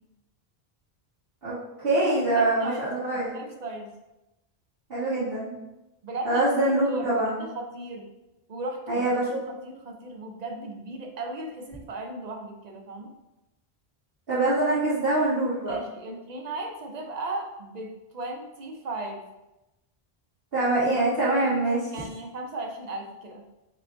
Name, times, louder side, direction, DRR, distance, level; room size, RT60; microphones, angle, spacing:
voice 1, 1.4-3.3 4.9-5.6 6.3-7.4 8.9-9.4 14.3-15.8 20.5-21.8, right 2 dB, 70° right, -13 dB, 1.9 m, -24 dB
voice 2, 2.4-2.9 3.3-3.9 6.0-6.4 6.9-8.1 8.5-9.0 9.4-13.1 15.7-19.2 21.9-23.4, right 2 dB, 50° right, 3 dB, 0.7 m, -36 dB
5.1 x 2.9 x 3.3 m, 0.96 s
omnidirectional pair, 1.0 m